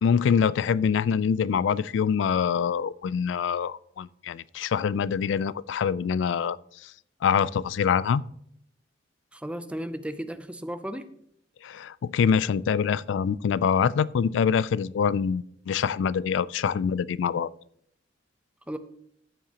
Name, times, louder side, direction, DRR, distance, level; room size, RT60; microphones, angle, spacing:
voice 1, 0.0-6.6 6.8-6.9 7.2-8.2 11.6-17.5, left 7 dB, 75° left, 20 dB, 0.3 m, -25 dB
voice 2, 9.3-11.1 18.7-18.8, equal, 5° right, 11 dB, 0.5 m, -34 dB
13.0 x 7.5 x 2.9 m, 0.70 s
head